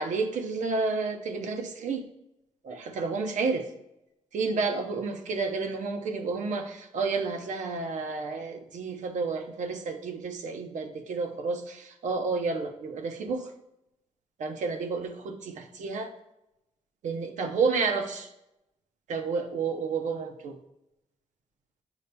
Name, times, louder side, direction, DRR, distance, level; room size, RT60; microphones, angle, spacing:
voice 1, 0.0-2.1 2.6-3.7 4.3-13.5 14.4-16.1 17.0-18.3 19.1-20.6, right 4 dB, 85° right, 6 dB, 0.7 m, -30 dB
8.1 x 6.7 x 2.2 m, 0.89 s
wide cardioid pair, 170°, 12 cm